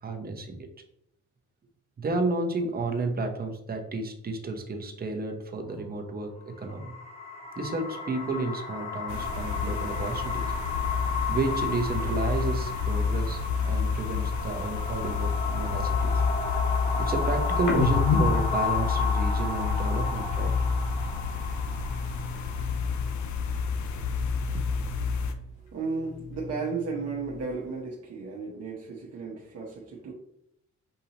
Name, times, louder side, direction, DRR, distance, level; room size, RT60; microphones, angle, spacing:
voice 1, 0.0-0.7 2.0-6.9 7.6-10.5 11.3-16.2 17.0-20.5 24.5-24.6, right 3 dB, 30° right, 4 dB, 0.9 m, -31 dB
sound 1, 6.5-23.7, left 5 dB, 20° left, 1.1 m, -34 dB
sound 2, 9.1-25.3, left 5 dB, 70° left, 0.6 m, -29 dB
sound 3, 17.6-21.2 21.5-23.4 23.6-25.5 25.8-27.7, left 3 dB, 85° left, 0.9 m, -33 dB
voice 2, 25.6-30.1, right 4 dB, 55° right, -3 dB, 1.0 m, -34 dB
6.5 x 2.7 x 2.9 m, 0.76 s
cardioid pair, 90°, 30 cm